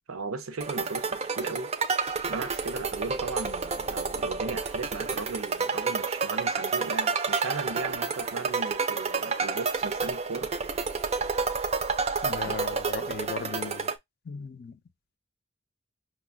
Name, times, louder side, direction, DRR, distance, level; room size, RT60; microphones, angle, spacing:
voice 1, 0.1-1.7 2.3-10.5 12.4-12.6, right 3 dB, 85° right, 0.6 m, -36 dB
sound 1, 0.6-13.9, right 4 dB, 30° right, 0.4 m, -30 dB
voice 2, 12.2-13.9 14.3-14.8, left 6 dB, 50° left, 0.4 m, -37 dB
5.8 x 2.3 x 2.2 m
head